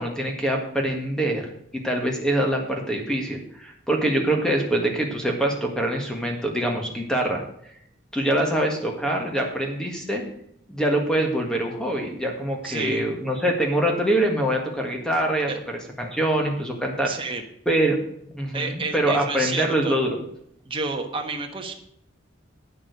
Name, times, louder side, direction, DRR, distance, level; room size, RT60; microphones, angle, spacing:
voice 1, 0.0-1.5 1.7-7.4 8.1-10.2 10.7-15.5 16.0-17.3 17.7-18.0 18.3-20.2, right 1 dB, 5° left, 1 dB, 1.7 m, -24 dB
voice 2, 12.6-13.0 15.5-15.6 17.0-17.4 18.5-20.0 20.6-21.7, right 3 dB, 25° right, 3 dB, 1.2 m, -30 dB
9.0 x 7.4 x 6.5 m, 0.71 s
head